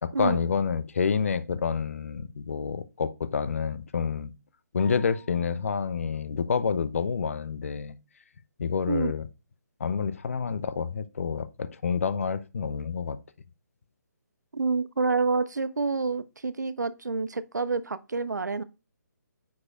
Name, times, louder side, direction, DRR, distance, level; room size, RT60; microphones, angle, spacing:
voice 1, 0.0-4.3 4.7-7.9 8.6-9.2 9.8-13.2, left 6 dB, 45° left, 0.5 m, -28 dB
sound 1, 4.8-5.8, left 11 dB, 15° left, 0.7 m, -51 dB
voice 2, 14.5-18.6, right 4 dB, 70° right, 0.5 m, -28 dB
9.4 x 4.8 x 2.4 m
figure-of-eight pair, 140°, 10 cm